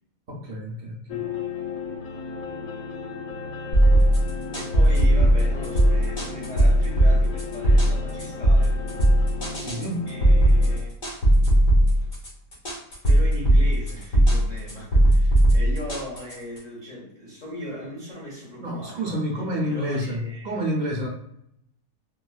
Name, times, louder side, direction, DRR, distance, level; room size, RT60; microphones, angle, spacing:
voice 1, 0.3-1.3 9.6-10.1 18.6-21.1, equal, 60° right, -3 dB, 0.4 m, -29 dB
sound 1, 1.1-10.8, left 5 dB, 65° left, 1.0 m, -35 dB
sound 2, 3.7-16.6, right 1 dB, 50° left, 1.7 m, -18 dB
voice 2, 4.5-8.8 9.5-10.9 11.3-12.1 13.0-19.2 19.6-20.6, equal, 35° left, -6 dB, 0.9 m, -39 dB
4.7 x 2.3 x 2.3 m, 0.76 s
omnidirectional pair, 1.7 m